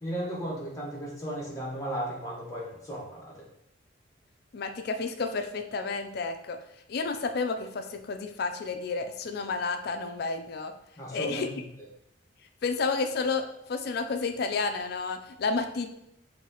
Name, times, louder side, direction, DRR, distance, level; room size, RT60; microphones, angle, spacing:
voice 1, 0.0-3.5 11.0-11.6, right 1 dB, 15° left, -4 dB, 1.1 m, -35 dB
voice 2, 4.5-6.6 6.9-10.7 11.1-11.5 12.6-15.9, left 4 dB, 50° left, 7 dB, 0.4 m, -31 dB
5.7 x 2.7 x 2.8 m, 0.79 s
head